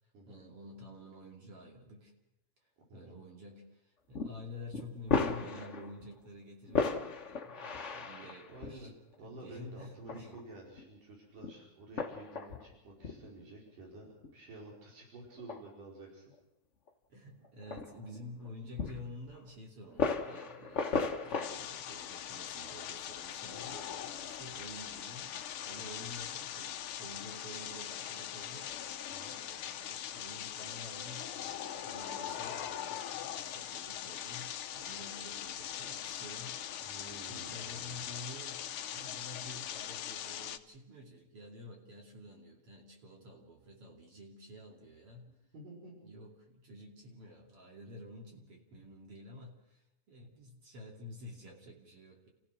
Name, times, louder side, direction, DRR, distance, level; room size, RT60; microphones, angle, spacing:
voice 1, 0.3-2.1 2.9-8.9 9.2-10.3 17.1-28.7 29.3-45.4 46.0-52.3, left 1 dB, 45° right, 0 dB, 3.5 m, -50 dB
sound 1, 4.1-4.3 4.7-6.1 6.7-8.7 9.8-10.4 10.8-10.9 11.4-11.6 12.0-12.7 13.0-13.3 14.2-14.3 15.3-15.6 16.3-16.4 16.9-17.0 17.4-18.5 18.8-19.4 19.9-21.5, left 4 dB, 55° left, 0.8 m, -35 dB
voice 2, 8.5-8.9 9.2-16.3 25.8-26.1 29.1-29.4 36.8-38.1 45.5-46.1, right 2 dB, 85° right, -2 dB, 6.6 m, -51 dB
sound 2, 21.4-40.6, left 10 dB, 70° left, 1.3 m, -41 dB
29.5 x 15.5 x 6.2 m, 0.87 s
omnidirectional pair, 3.6 m